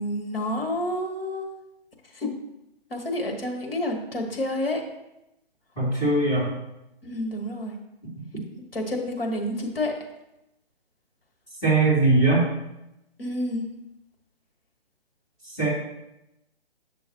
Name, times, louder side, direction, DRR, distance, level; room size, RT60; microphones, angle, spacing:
voice 1, 0.0-1.5 2.1-2.3 2.9-4.8 7.0-7.7 8.7-9.9 13.2-13.7, left 1 dB, 65° left, 1 dB, 1.6 m, -29 dB
voice 2, 5.8-6.5 11.6-12.4 15.6-15.7, right 2 dB, 10° left, -11 dB, 2.9 m, -20 dB
8.4 x 6.2 x 3.0 m, 0.90 s
figure-of-eight pair, 140°, 31 cm